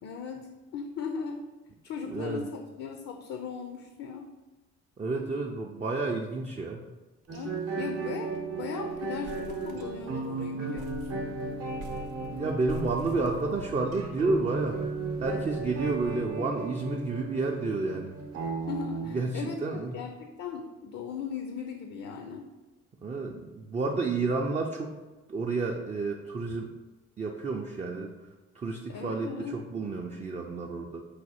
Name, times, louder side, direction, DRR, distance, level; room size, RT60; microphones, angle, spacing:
voice 1, 0.0-1.4 1.8-4.3 7.3-11.3 18.7-19.6 19.9-22.5 28.9-29.6, left 6 dB, 60° left, 4 dB, 0.5 m, -38 dB
voice 2, 2.1-2.5 5.0-6.8 12.3-14.8 15.2-18.1 19.1-20.0 23.0-24.9 25.3-26.7 27.2-28.1 28.5-31.0, right 3 dB, 25° right, 0 dB, 0.4 m, -30 dB
sound 1, 7.2-7.5 7.8-7.9 8.2-8.5 8.9-10.3 10.7-14.0, right 4 dB, 85° right, 0.6 m, -46 dB
sound 2, 7.3-19.1, right 4 dB, 55° right, 0.8 m, -35 dB
sound 3, 11.0-16.3, left 1 dB, 85° left, 1.2 m, -50 dB
4.8 x 2.4 x 4.2 m, 1.2 s
cardioid pair, 90°, 30 cm